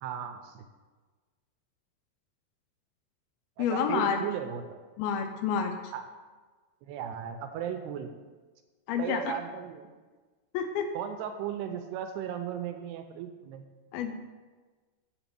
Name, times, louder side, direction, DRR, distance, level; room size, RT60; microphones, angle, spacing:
voice 1, 0.0-0.7 3.6-4.6 5.9-6.1 6.8-8.1 9.0-9.9 10.9-13.7, right 9 dB, 85° right, 6 dB, 2.4 m, -36 dB
voice 2, 3.6-4.2 5.0-5.7 8.9-9.3 10.5-10.9 13.9-14.2, left 7 dB, 85° left, 5 dB, 2.1 m, -29 dB
7.7 x 7.1 x 6.9 m, 1.3 s
omnidirectional pair, 5.1 m